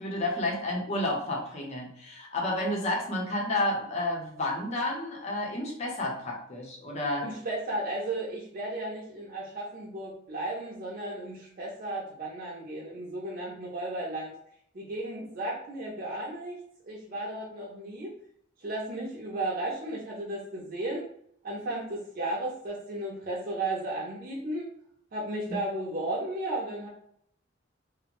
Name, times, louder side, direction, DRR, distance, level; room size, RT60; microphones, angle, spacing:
voice 1, 0.0-7.3 25.5-25.6, left 1 dB, 35° left, -1 dB, 0.6 m, -31 dB
voice 2, 7.2-14.3 14.7-18.1 18.6-21.1 21.4-24.7 25.1-26.9, right 1 dB, 45° right, -4 dB, 0.5 m, -34 dB
2.5 x 2.0 x 2.9 m, 0.67 s
head